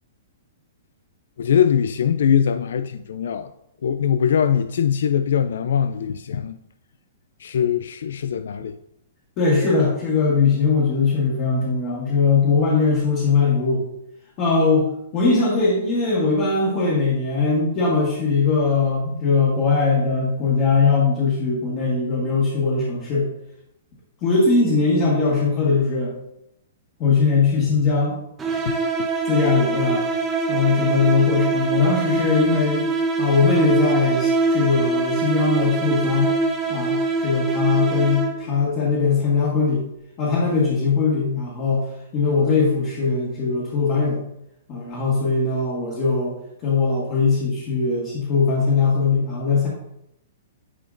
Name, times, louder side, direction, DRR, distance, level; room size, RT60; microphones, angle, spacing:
voice 1, 1.4-3.5 3.8-6.6 7.4-8.8 28.6-28.8, left 8 dB, 75° left, 0.3 m, -21 dB
voice 2, 9.4-13.8 14.4-14.9 15.1-23.3 24.2-26.1 27.0-28.2 29.3-30.0 30.5-36.3 36.7-39.8 40.2-44.3 44.7-46.4 46.6-49.7, left 4 dB, 30° left, 1.7 m, -20 dB
sound 1, 28.4-38.6, right 3 dB, 10° right, 0.9 m, -23 dB
9.7 x 5.0 x 2.6 m
hypercardioid pair, 160°, 0 cm